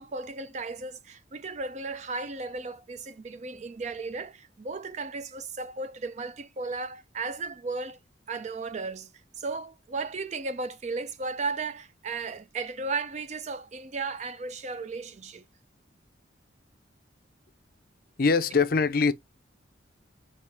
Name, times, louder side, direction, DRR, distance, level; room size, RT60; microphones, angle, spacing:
voice 1, 0.0-8.0 8.3-9.1 9.4-15.4, right 3 dB, 35° right, 0.4 m, -35 dB
voice 2, 18.2-19.1, left 4 dB, 50° left, 0.5 m, -22 dB
4.3 x 2.9 x 3.4 m
head